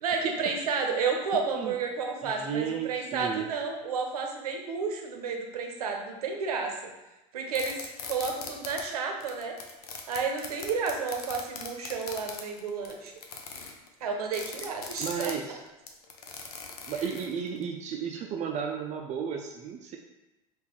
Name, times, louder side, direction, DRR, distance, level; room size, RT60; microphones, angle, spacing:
voice 1, 0.0-6.7 7.3-7.8 8.1-9.5 10.1-13.1 14.0-15.3, right 5 dB, 85° right, 3 dB, 0.7 m, -31 dB
voice 2, 2.2-3.5 15.0-15.6 16.9-20.0, right 7 dB, 40° right, 3 dB, 0.4 m, -33 dB
sound 1, 7.5-8.8 9.2-17.6, left 5 dB, 85° left, 0.6 m, -40 dB
3.5 x 3.1 x 3.0 m, 0.99 s
hypercardioid pair, 85°, 19 cm